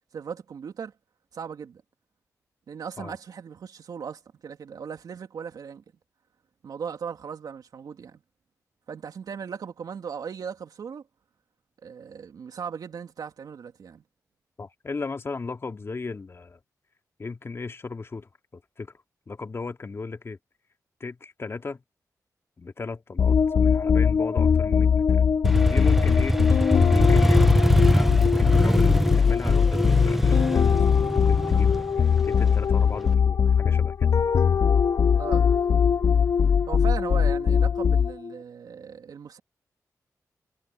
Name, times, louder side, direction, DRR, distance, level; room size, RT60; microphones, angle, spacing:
voice 1, 0.1-0.9 1.3-1.8 2.7-5.8 6.6-8.2 8.9-11.0 11.8-14.0 35.2-35.5 36.7-39.4, right 7 dB, 80° right, 3.2 m, -37 dB
voice 2, 14.6-16.6 17.2-18.9 19.3-20.4 21.0-21.8 22.6-25.1 25.6-26.4 26.9-30.8 31.1-34.1, left 4 dB, 40° left, 2.8 m, -36 dB
sound 1, 23.2-38.3, left 6 dB, 55° left, 0.6 m, -21 dB
Motorcycle, 25.4-33.1, equal, 5° right, 0.9 m, -23 dB
wide cardioid pair, 105°, 6 cm